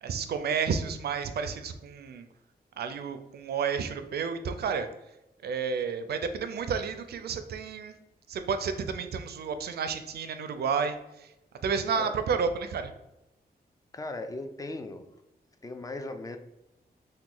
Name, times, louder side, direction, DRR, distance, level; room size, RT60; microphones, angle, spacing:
voice 1, 0.0-2.3 2.8-4.9 5.4-7.9 8.3-11.3 11.6-12.9, right 6 dB, 75° right, 9 dB, 0.4 m, -31 dB
voice 2, 13.9-15.1 15.6-16.4, left 2 dB, 20° left, 7 dB, 0.3 m, -38 dB
2.9 x 2.2 x 3.8 m, 0.92 s
wide cardioid pair, 100°, 17 cm